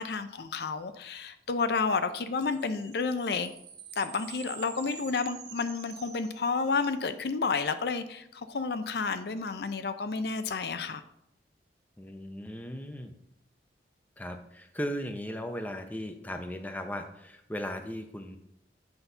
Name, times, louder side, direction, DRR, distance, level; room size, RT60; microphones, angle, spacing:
voice 1, 0.0-3.5 4.0-11.0, left 4 dB, 65° left, 10 dB, 0.5 m, -31 dB
sound 1, 2.4-7.0, right 7 dB, 65° right, 1.2 m, -47 dB
voice 2, 12.0-13.1 14.2-18.4, equal, 10° left, 5 dB, 0.6 m, -37 dB
8.0 x 4.0 x 5.5 m, 0.76 s
head